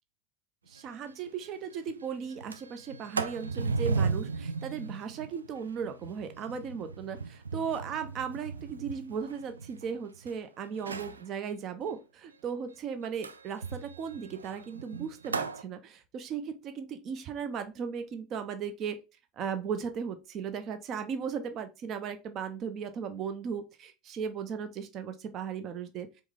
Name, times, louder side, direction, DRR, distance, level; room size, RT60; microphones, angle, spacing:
voice 1, 0.7-19.0 19.4-26.1, right 7 dB, 40° right, 0.7 m, -36 dB
Sliding door, 0.8-0.9 1.2-1.3 1.6-1.9 2.3-10.3 10.7-11.2 13.2-15.6, right 4 dB, 80° right, 0.4 m, -36 dB
4.7 x 3.1 x 3.5 m
figure-of-eight pair, 75°, 0 cm